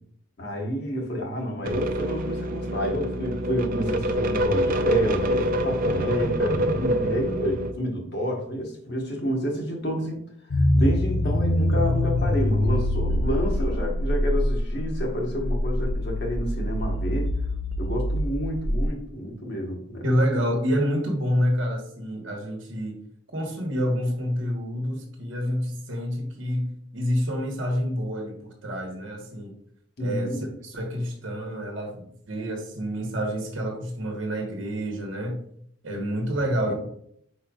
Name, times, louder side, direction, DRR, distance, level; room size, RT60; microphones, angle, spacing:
voice 1, 0.4-10.2 10.5-17.3 17.8-20.0 30.0-30.5 36.3-36.7, equal, 50° left, 0 dB, 1.1 m, -29 dB
sound 1, 1.6-7.7, equal, 40° right, 0.4 m, -26 dB
sound 2, 10.5-18.9, left 1 dB, 80° left, 0.6 m, -24 dB
voice 2, 20.0-23.0 23.3-29.5 30.0-35.4 35.8-36.7, equal, 65° right, 1 dB, 1.1 m, -28 dB
5.1 x 4.4 x 2.3 m, 0.68 s
head